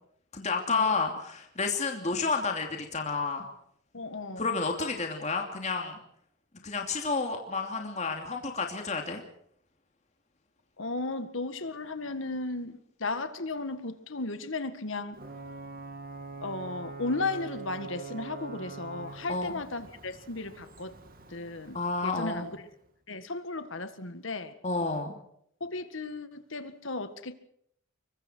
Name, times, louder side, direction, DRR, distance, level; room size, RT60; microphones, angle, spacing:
voice 1, 0.3-3.4 4.4-6.0 6.6-9.2 19.3-19.6 21.7-22.5 24.6-25.2, left 4 dB, 35° left, 2.8 m, -30 dB
voice 2, 3.9-4.5 10.8-15.2 16.4-21.0 21.3-22.5 23.1-24.5 25.6-27.3, left 3 dB, 70° left, 1.8 m, -35 dB
Ocean / Boat Water vehicle / Alarm, 15.1-22.7, right 4 dB, 45° right, 2.4 m, -44 dB
26.5 x 23.5 x 4.6 m
head